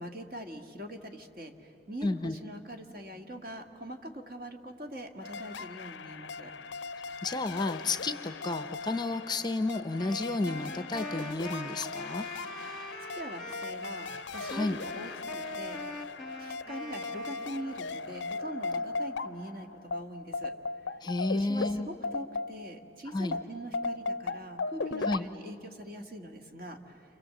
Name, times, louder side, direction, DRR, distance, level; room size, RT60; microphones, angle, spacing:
voice 1, 0.0-6.5 13.1-16.0 16.4-20.5 21.3-27.0, equal, 45° right, 4 dB, 1.9 m, -43 dB
voice 2, 2.0-2.4 7.2-12.3 14.5-14.8 21.0-21.9 23.1-23.4 25.0-25.3, left 2 dB, 20° left, 10 dB, 0.6 m, -31 dB
sound 1, 5.2-22.9 23.3-25.2, left 4 dB, 65° left, 0.5 m, -38 dB
Wind instrument woodwind instrument, 10.0-18.1, left 1 dB, ahead, 1.4 m, -44 dB
29.5 x 26.5 x 7.7 m, 2.7 s
head